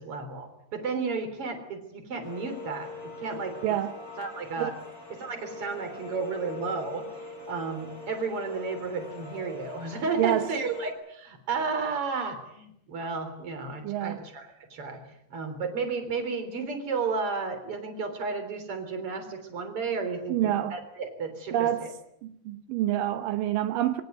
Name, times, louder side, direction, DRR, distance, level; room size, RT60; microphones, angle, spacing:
voice 1, 0.0-3.8 4.2-4.7 5.1-15.0 15.3-21.9, right 4 dB, 30° right, 3.8 m, -33 dB
sound 1, 2.2-10.9, left 2 dB, 30° left, 7.4 m, -42 dB
voice 2, 13.8-14.2 20.3-20.8 21.5-21.9 22.2-24.0, right 12 dB, 80° right, 2.0 m, -27 dB
23.5 x 18.0 x 9.4 m
omnidirectional pair, 5.5 m